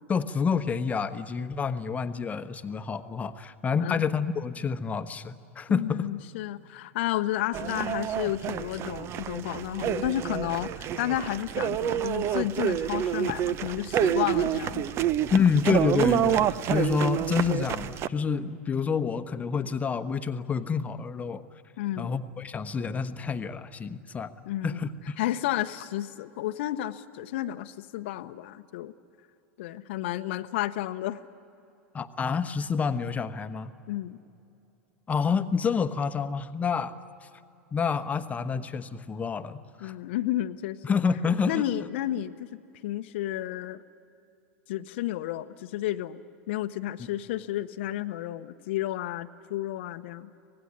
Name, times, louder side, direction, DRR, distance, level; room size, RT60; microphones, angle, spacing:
voice 1, 0.1-6.1 15.3-21.4 22.0-24.3 24.6-25.2 31.9-33.7 35.1-36.9 37.7-39.9 40.8-41.6, left 6 dB, 20° left, 10 dB, 1.0 m, -28 dB
voice 2, 5.7-14.8 21.8-22.2 24.5-24.8 25.2-28.9 29.6-31.2 33.9-34.2 39.8-40.8 41.5-42.5 42.8-43.8 44.7-46.2 46.5-50.3, left 14 dB, 60° left, 10 dB, 0.8 m, -31 dB
sound 1, 7.5-18.1, right 10 dB, 35° right, 0.7 m, -28 dB
25.5 x 19.0 x 9.8 m, 2.7 s
figure-of-eight pair, 90°, 7 cm